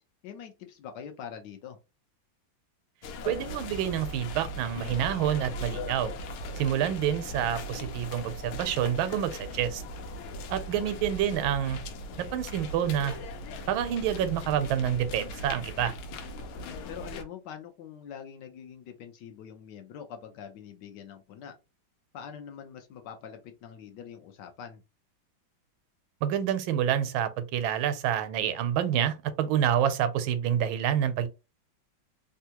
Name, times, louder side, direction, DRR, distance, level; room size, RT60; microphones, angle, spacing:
voice 1, 0.2-1.8 6.7-7.0 10.7-10.9 16.9-21.5 22.1-24.8, left 8 dB, 70° left, 1.1 m, -44 dB
sound 1, 3.0-17.2, left 1 dB, 90° left, 1.5 m, -39 dB
voice 2, 3.3-6.1 6.6-9.8 10.5-11.8 12.2-13.2 13.7-15.9 26.2-31.3, right 10 dB, 90° right, 1.4 m, -28 dB
3.5 x 2.3 x 2.8 m
omnidirectional pair, 2.2 m